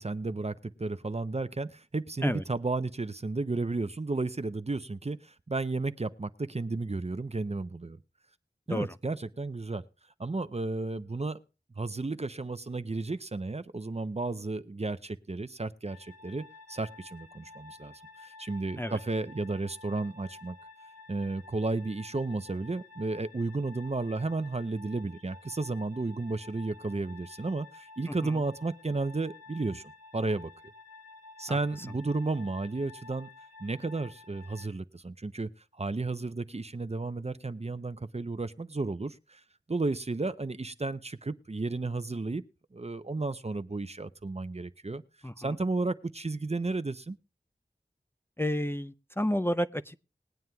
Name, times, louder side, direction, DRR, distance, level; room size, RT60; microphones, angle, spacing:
voice 1, 0.0-8.0 8.7-9.8 10.2-11.4 11.8-20.6 21.1-30.5 31.4-33.3 33.6-39.4 39.7-42.4 42.7-45.0 45.4-47.2, right 3 dB, 40° right, 0.6 m, -33 dB
sound 1, 15.9-34.7, left 3 dB, 55° right, 1.4 m, -52 dB
voice 2, 45.2-45.6 48.4-50.0, equal, 15° left, 0.5 m, -31 dB
20.5 x 9.2 x 2.3 m
wide cardioid pair, 40°, 17 cm